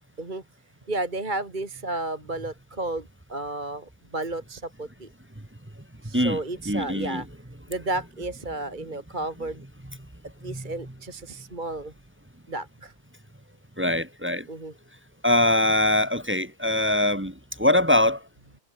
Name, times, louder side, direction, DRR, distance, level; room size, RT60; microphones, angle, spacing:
voice 1, 0.9-5.1 6.0-7.3 7.7-9.6 10.4-11.9 12.5-12.9 14.5-14.7, right 2 dB, 30° right, 2.5 m, -32 dB
voice 2, 6.6-7.2 10.5-10.7 13.8-14.5 15.2-18.2, left 1 dB, 10° right, 1.2 m, -23 dB
omnidirectional pair, 1.6 m